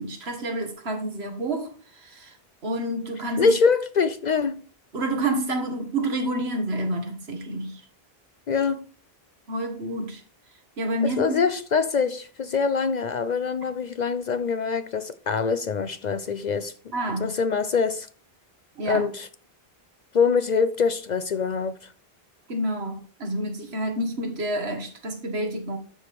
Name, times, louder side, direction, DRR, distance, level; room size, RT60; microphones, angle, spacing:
voice 1, 0.0-2.3 2.6-3.5 4.9-7.8 9.5-10.2 10.8-11.2 16.9-17.3 18.8-19.1 22.5-25.8, right 1 dB, 75° right, 1.8 m, -29 dB
voice 2, 3.4-4.6 8.5-8.8 11.2-16.7 17.2-18.1 18.9-19.3 20.1-21.8, left 5 dB, 55° left, 0.6 m, -24 dB
12.5 x 4.9 x 3.4 m
omnidirectional pair, 1.1 m